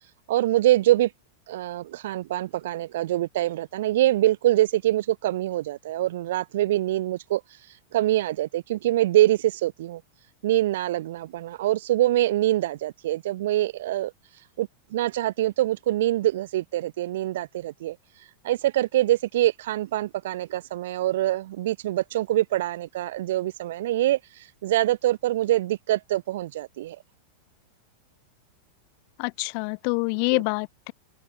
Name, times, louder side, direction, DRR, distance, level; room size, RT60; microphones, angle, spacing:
voice 1, 0.3-1.1 1.5-7.4 7.9-10.0 10.4-14.1 14.6-18.0 18.4-24.2 24.6-27.0 30.3-30.4, right 14 dB, 55° right, 0.8 m, -24 dB
voice 2, 29.2-30.9, left 40 dB or more, 45° left, 0.6 m, -26 dB
figure-of-eight pair, 90°, 0 cm